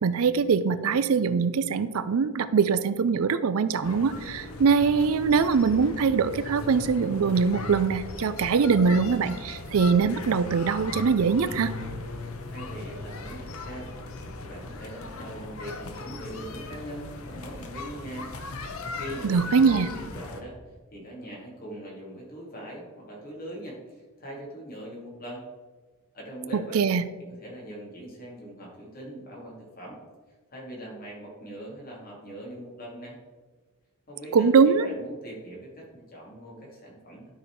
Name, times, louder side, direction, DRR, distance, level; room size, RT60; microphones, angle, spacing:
voice 1, 0.0-11.8 19.2-19.9 26.5-27.0 34.3-34.9, right 5 dB, 80° right, 13 dB, 0.4 m, -22 dB
sound 1, 3.8-20.4, left 3 dB, 80° left, 0.9 m, -38 dB
voice 2, 12.5-18.3 18.9-20.6 20.9-25.4 26.1-26.8 27.3-30.0 30.5-33.2 34.1-37.3, right 1 dB, 40° left, -4 dB, 2.7 m, -41 dB
12.0 x 4.4 x 4.7 m, 1.3 s
head